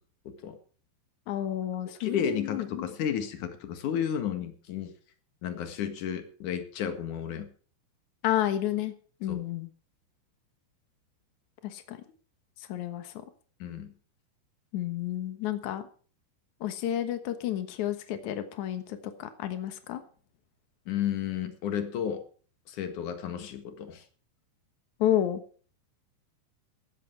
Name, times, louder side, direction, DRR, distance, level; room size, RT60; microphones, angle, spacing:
voice 1, 0.2-0.6 2.0-4.9 5.4-7.5 9.3-9.4 13.6-13.9 20.9-22.2 22.7-24.0, left 8 dB, 55° left, 8 dB, 2.5 m, -32 dB
voice 2, 1.3-2.8 8.2-8.9 9.2-9.7 11.6-12.0 12.6-13.2 14.7-15.9 16.6-20.0 25.0-25.4, left 11 dB, 90° left, 9 dB, 1.7 m, -31 dB
15.5 x 12.0 x 4.6 m, 0.41 s
omnidirectional pair, 5.5 m